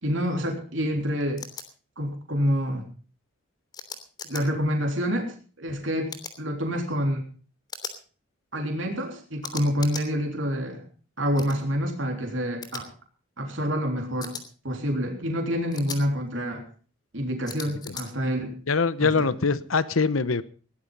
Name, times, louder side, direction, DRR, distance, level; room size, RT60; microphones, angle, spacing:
voice 1, 0.0-1.4 2.0-2.8 4.3-7.3 8.5-10.8 11.2-12.9 13.4-14.4 14.6-16.6 17.1-18.5 19.0-19.1, equal, 65° right, 2 dB, 3.5 m, -27 dB
sound 1, 1.4-1.6 3.7-4.4 6.1-6.4 7.7-8.0 9.4-10.1 11.4-11.6 12.6-12.8 14.2-14.4 15.7-16.0 17.5-18.0, left 5 dB, 20° left, 3.0 m, -37 dB
voice 2, 18.7-20.4, left 4 dB, 80° left, 16 dB, 1.0 m, -23 dB
18.0 x 11.5 x 5.4 m, 0.40 s
head